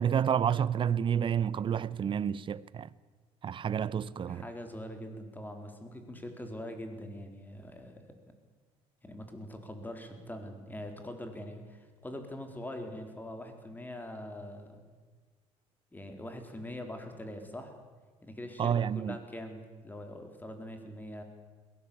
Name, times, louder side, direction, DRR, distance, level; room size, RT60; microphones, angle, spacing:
voice 1, 0.0-2.9 3.4-4.5 18.6-19.2, right 8 dB, 40° right, 0.8 m, -29 dB
voice 2, 4.3-8.0 9.0-14.8 15.9-17.8 18.2-21.2, left 1 dB, 15° left, 4.0 m, -43 dB
21.5 x 17.5 x 8.6 m
supercardioid pair, 90°, 13 cm